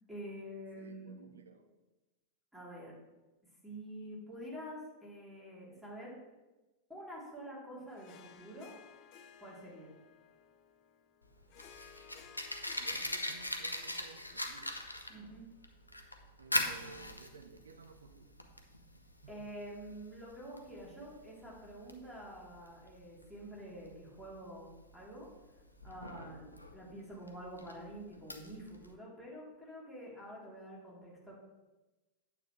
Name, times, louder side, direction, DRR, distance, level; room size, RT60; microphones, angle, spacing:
voice 1, 0.1-1.4 2.5-3.0 3.6-6.2 6.9-8.7 9.4-9.9 15.1-15.4 19.3-25.3 25.8-31.3, equal, 5° right, -5 dB, 3.3 m, -47 dB
voice 2, 0.7-1.7 12.7-14.8 16.4-18.3 19.2-19.3, right 5 dB, 70° right, 6 dB, 0.9 m, -55 dB
Harp, 7.9-16.5, left 8 dB, 40° left, 0.7 m, -60 dB
Fire, 11.2-28.9, left 1 dB, 85° left, 0.7 m, -41 dB
9.0 x 8.3 x 3.3 m, 1.1 s
figure-of-eight pair, 90°, 0 cm